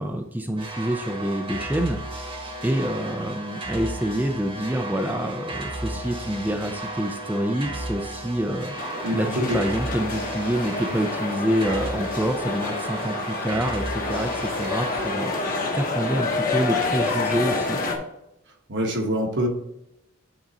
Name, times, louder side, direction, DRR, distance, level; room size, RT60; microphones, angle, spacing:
voice 1, 0.0-2.3 2.6-8.7 9.1-15.3 15.7-17.8, right 1 dB, 10° right, 4 dB, 0.5 m, -27 dB
sound 1, 0.6-17.4, right 1 dB, 25° right, 1.1 m, -35 dB
sound 2, 8.8-18.0, left 3 dB, 45° left, 1.2 m, -28 dB
voice 2, 9.0-9.4 18.7-19.5, equal, 60° right, 3 dB, 1.2 m, -25 dB
8.8 x 3.9 x 4.1 m, 0.85 s
head